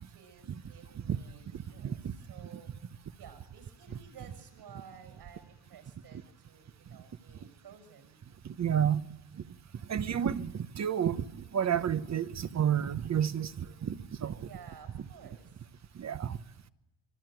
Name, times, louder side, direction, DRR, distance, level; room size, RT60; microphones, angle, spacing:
voice 1, 0.0-2.7 3.2-8.2 14.4-15.7, right 7 dB, 65° right, 6.5 m, -54 dB
voice 2, 8.6-9.0 9.9-11.2 11.5-14.3 16.0-16.4, right 9 dB, 40° right, 1.0 m, -30 dB
25.5 x 24.5 x 9.2 m
cardioid pair, 115°, 42 cm